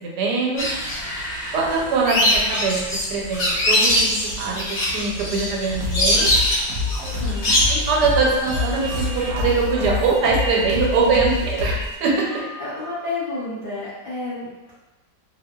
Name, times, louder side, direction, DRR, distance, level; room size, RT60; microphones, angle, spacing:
voice 1, 0.0-0.7 1.5-2.8 3.1-6.3 7.7-12.3, right 4 dB, 90° right, -2 dB, 1.2 m, -22 dB
sound 1, 0.6-9.3, equal, 60° left, 0.9 m, -23 dB
sound 2, 5.7-12.0, left 3 dB, 70° right, 1.0 m, -27 dB
voice 2, 7.2-7.5 10.7-11.3 12.6-14.7, left 3 dB, 75° left, -10 dB, 0.4 m, -30 dB
sound 3, 8.5-13.3, right 3 dB, 45° right, 0.4 m, -38 dB
2.7 x 2.1 x 2.2 m, 1.1 s
omnidirectional pair, 1.7 m